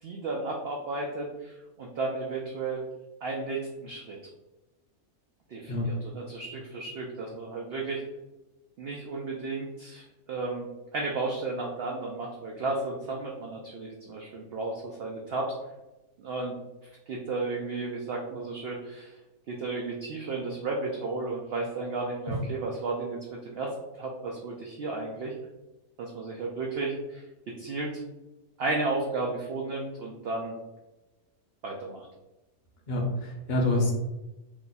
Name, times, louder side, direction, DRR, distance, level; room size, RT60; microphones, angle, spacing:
voice 1, 0.0-2.8 3.2-4.2 5.5-8.0 8.8-10.7 10.9-15.5 16.2-16.5 17.1-19.2 19.5-25.4 26.0-28.0 28.6-30.5 31.6-32.1, right 3 dB, 85° right, -1 dB, 0.5 m, -33 dB
voice 2, 32.9-33.9, left 1 dB, 50° left, -1 dB, 0.6 m, -26 dB
2.9 x 2.3 x 3.9 m, 1.0 s
omnidirectional pair, 1.6 m